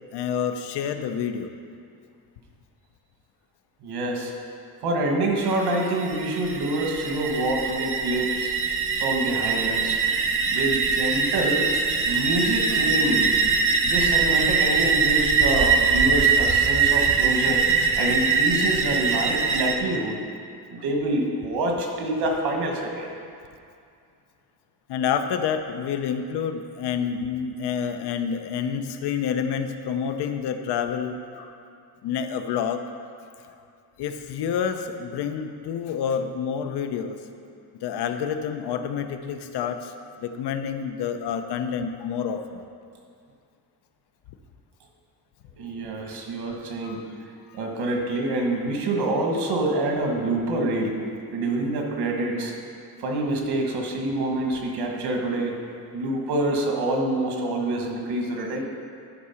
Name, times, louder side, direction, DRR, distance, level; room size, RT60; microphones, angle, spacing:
voice 1, 0.1-1.5 12.8-12.9 24.9-31.6 32.0-32.8 33.5-33.6 34.0-37.2 37.8-39.9 40.2-42.6 46.8-47.1 47.5-47.6, left 7 dB, 85° left, 7 dB, 0.7 m, -28 dB
voice 2, 3.8-4.3 4.8-8.5 9.0-10.0 10.5-11.7 12.0-13.3 13.8-17.6 17.9-20.2 20.7-23.1 45.6-47.0 47.5-51.0 51.3-52.5 53.0-55.6 55.9-58.6, right 2 dB, 75° right, 1 dB, 1.5 m, -26 dB
sound 1, 5.4-19.8, right 5 dB, 35° right, 0.6 m, -22 dB
11.5 x 4.8 x 5.7 m, 2.4 s
cardioid pair, 175°, 39 cm